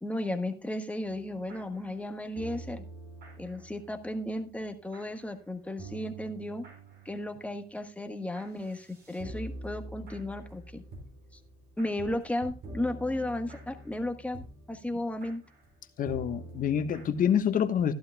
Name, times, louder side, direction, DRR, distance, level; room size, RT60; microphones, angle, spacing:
voice 1, 0.0-2.8 3.4-6.6 7.0-10.8 11.8-15.4, left 1 dB, 10° left, 1.4 m, -34 dB
sound 1, 1.0-5.4 5.8-17.4, right 2 dB, 65° right, 5.2 m, -47 dB
voice 2, 16.0-17.9, left 8 dB, 55° left, 1.2 m, -27 dB
14.5 x 11.5 x 2.3 m
cardioid pair, 110°, 17 cm